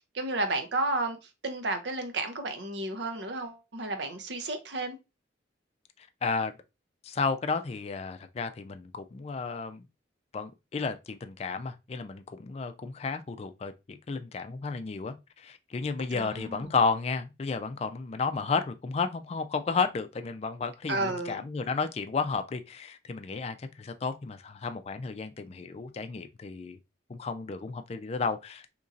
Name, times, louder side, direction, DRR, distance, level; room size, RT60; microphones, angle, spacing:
voice 1, 0.1-1.2 1.4-5.0 16.1-16.7 20.9-21.4, right 2 dB, 70° right, 0.7 m, -32 dB
voice 2, 6.2-6.5 7.0-9.9 10.3-26.8 27.1-28.7, left 4 dB, 35° left, 0.3 m, -32 dB
2.9 x 2.6 x 3.7 m
head